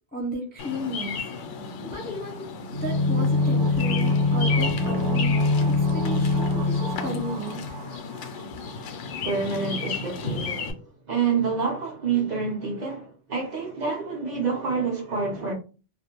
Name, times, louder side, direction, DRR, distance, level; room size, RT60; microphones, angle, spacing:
voice 1, 0.1-1.2 1.6-7.8, equal, 10° left, 0.6 m, -34 dB
Bird vocalization bird call bird song, 0.6-10.7, left 5 dB, 70° left, 0.8 m, -34 dB
sound 1, 2.7-8.4 8.7-8.8, left 3 dB, 85° right, 1.0 m, -24 dB
voice 2, 9.2-15.5, right 5 dB, 45° right, 0.7 m, -28 dB
2.5 x 2.2 x 2.9 m
omnidirectional pair, 1.3 m